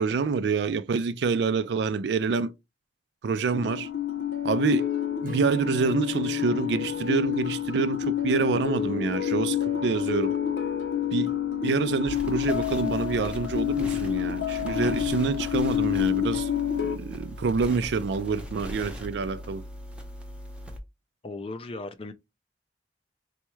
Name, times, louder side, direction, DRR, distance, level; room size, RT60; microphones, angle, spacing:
voice 1, 0.0-2.5 3.2-3.9 4.4-4.9 5.2-9.6 9.8-10.3 11.1-16.5 16.8-19.6, right 5 dB, 70° right, 0.4 m, -27 dB
sound 1, 3.5-17.0, left 9 dB, 85° left, 0.7 m, -28 dB
Acoustic guitar / Strum, 5.2-8.6, right 1 dB, 50° right, 0.8 m, -43 dB
sound 2, 12.1-20.8, equal, 5° right, 0.7 m, -39 dB
voice 2, 21.2-22.1, left 2 dB, 35° left, 0.4 m, -36 dB
4.2 x 2.3 x 3.0 m
head